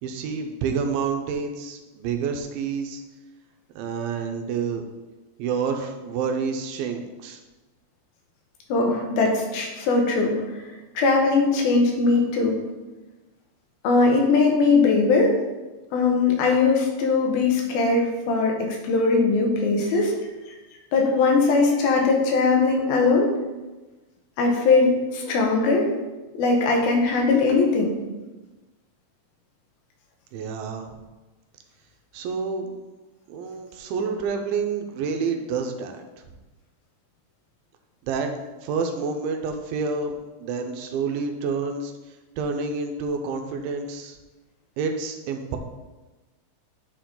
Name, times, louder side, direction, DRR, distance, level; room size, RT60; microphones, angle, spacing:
voice 1, 0.0-3.0 3.8-4.8 5.4-7.4 30.3-31.0 32.1-32.8 33.3-36.0 38.0-38.3 38.6-44.2 44.8-45.6, right 5 dB, 80° right, 4 dB, 2.4 m, -28 dB
voice 2, 8.7-10.4 11.0-12.6 13.8-15.4 15.9-20.1 20.9-23.3 24.4-25.9 26.3-28.0, left 3 dB, 80° left, 1 dB, 2.9 m, -20 dB
9.0 x 4.9 x 3.8 m, 1.1 s
omnidirectional pair, 4.3 m